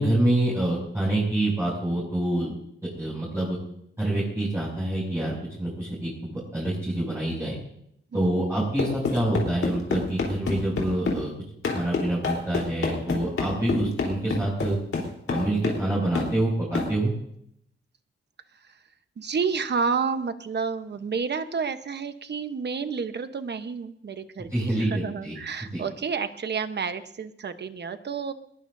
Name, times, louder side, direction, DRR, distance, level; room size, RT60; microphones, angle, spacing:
voice 1, 0.0-2.5 3.0-3.6 4.0-7.6 8.1-11.3 11.7-14.8 15.3-17.1 24.5-25.4 25.7-25.8, right 1 dB, 10° right, -7 dB, 6.6 m, -26 dB
sound 1, 8.8-11.2 11.6-15.9 16.1-16.3 16.7-16.9, left 4 dB, 80° left, 4.0 m, -28 dB
voice 2, 19.2-28.3, right 5 dB, 55° right, 9 dB, 1.1 m, -30 dB
21.5 x 19.5 x 2.8 m, 0.71 s
wide cardioid pair, 100°, 21 cm